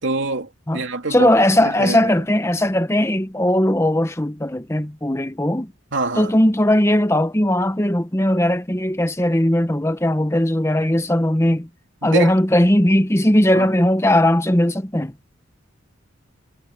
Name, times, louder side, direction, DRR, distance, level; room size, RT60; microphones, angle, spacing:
voice 1, 0.0-2.1 5.9-6.3 12.0-12.3 13.5-13.6, right 3 dB, 60° right, 3.2 m, -25 dB
voice 2, 1.1-5.7 6.1-11.7 12.0-15.1, left 1 dB, 15° left, 1.0 m, -18 dB
head